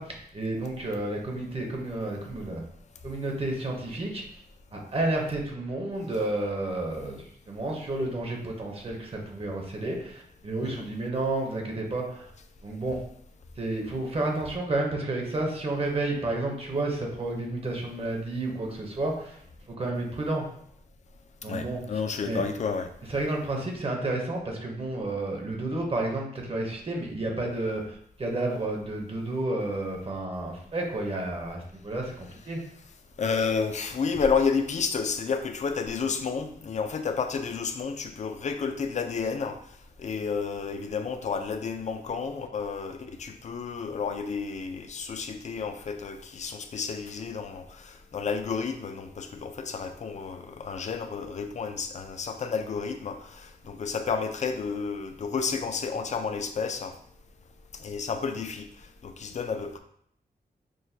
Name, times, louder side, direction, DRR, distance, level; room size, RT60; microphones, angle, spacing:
voice 1, 0.0-2.6 3.0-4.2 4.7-12.3 12.6-13.0 13.6-19.4 19.7-20.4 21.4-21.8 22.2-22.4 23.1-32.6, right 2 dB, 35° right, 0 dB, 0.7 m, -31 dB
voice 2, 21.5-22.9 33.2-39.6 40.0-56.9 57.8-58.7 59.0-59.8, left 5 dB, 45° left, 8 dB, 0.4 m, -31 dB
6.1 x 2.2 x 2.7 m, 0.67 s
wide cardioid pair, 160°, 17 cm